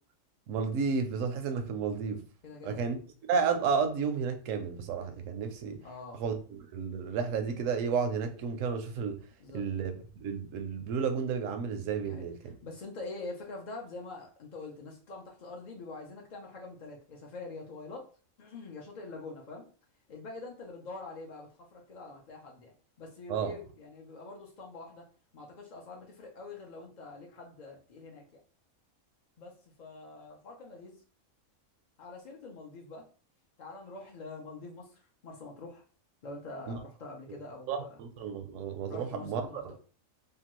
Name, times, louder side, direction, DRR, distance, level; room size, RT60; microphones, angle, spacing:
voice 1, 0.5-2.2 2.6-3.0 3.3-5.8 6.2-9.2 9.5-12.5 23.3-23.5 36.7-36.8 37.3-37.4 37.7-39.7, right 6 dB, 75° right, 7 dB, 0.9 m, -32 dB
voice 2, 2.4-2.8 5.8-6.2 9.4-9.6 12.0-12.2 12.6-18.1 18.4-19.7 20.1-22.7 23.0-25.1 25.3-28.2 29.4-29.5 29.8-31.0 32.0-33.0 33.6-35.8 36.2-38.0 38.9-39.7, left 3 dB, 65° left, -1 dB, 0.4 m, -45 dB
2.9 x 2.2 x 2.9 m, 0.39 s
omnidirectional pair, 1.4 m